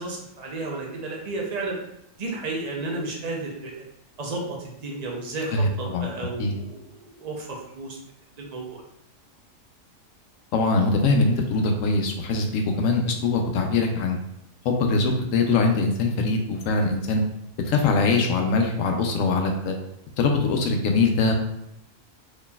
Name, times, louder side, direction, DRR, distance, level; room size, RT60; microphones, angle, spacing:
voice 1, 0.0-1.8 2.2-3.8 4.2-8.0 8.4-8.8, right 2 dB, 40° right, -1 dB, 0.6 m, -32 dB
voice 2, 5.5-6.1 6.4-6.5 10.5-14.2 14.6-17.2 17.7-19.8 20.2-21.3, left 3 dB, 80° left, 4 dB, 1.0 m, -22 dB
4.0 x 3.1 x 2.3 m, 0.79 s
omnidirectional pair, 1.4 m